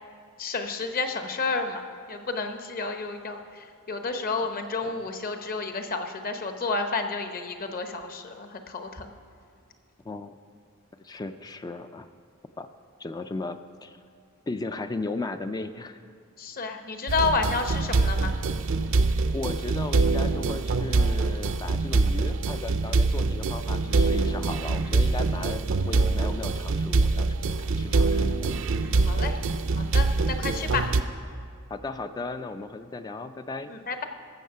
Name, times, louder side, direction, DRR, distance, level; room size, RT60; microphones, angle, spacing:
voice 1, 0.4-1.8 2.1-9.1 16.4-18.3 29.0-29.4 29.8-30.9 33.7-34.0, left 4 dB, 40° left, 6 dB, 0.9 m, -30 dB
voice 2, 10.1-10.4 11.0-12.1 12.6-12.7 13.0-14.0 14.5-16.0 19.3-27.3 27.6-28.3 31.7-33.7, left 3 dB, 20° left, 9 dB, 0.3 m, -36 dB
sound 1, 17.1-31.0, right 3 dB, 60° right, 0.5 m, -24 dB
13.5 x 7.3 x 5.6 m, 2.4 s
head